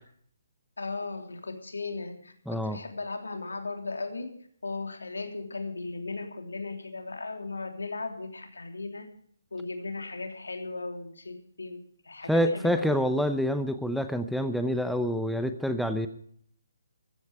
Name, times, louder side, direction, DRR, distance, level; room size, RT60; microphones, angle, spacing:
voice 1, 0.8-4.3 4.6-9.1 9.5-12.9, left 3 dB, 80° left, 5 dB, 3.2 m, -37 dB
voice 2, 2.5-2.8 12.3-16.1, equal, ahead, 8 dB, 0.7 m, -27 dB
15.0 x 14.0 x 4.8 m, 0.62 s
figure-of-eight pair, 145°, 0 cm